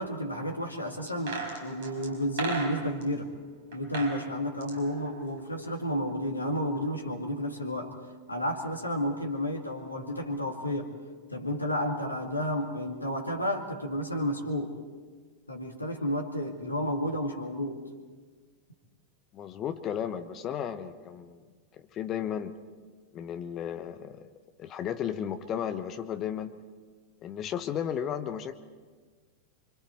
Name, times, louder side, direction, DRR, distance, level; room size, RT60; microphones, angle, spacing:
voice 1, 0.0-3.3 3.7-7.9 8.3-10.9 11.3-14.8 15.5-17.8, equal, 85° left, 3 dB, 2.2 m, -31 dB
sound 1, 1.1-3.1 3.7-4.2 4.5-5.8 6.1-6.2, right 4 dB, 55° right, 4.8 m, -36 dB
voice 2, 19.3-21.4 21.7-22.5 23.1-24.3 24.6-26.5 27.2-28.5, left 9 dB, 30° left, 10 dB, 1.0 m, -34 dB
25.5 x 25.0 x 4.6 m, 1.5 s
figure-of-eight pair, 90°, 0 cm